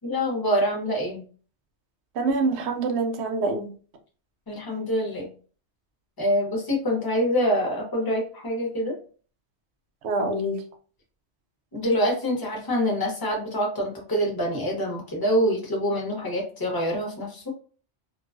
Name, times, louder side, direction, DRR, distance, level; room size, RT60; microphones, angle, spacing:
voice 1, 0.0-1.2 4.5-5.3 6.2-9.0 11.7-17.5, equal, 25° left, 0.7 m, -25 dB
voice 2, 2.1-3.7 10.0-10.6, right 3 dB, 70° right, 0.8 m, -25 dB
2.3 x 2.3 x 2.3 m
omnidirectional pair, 1.2 m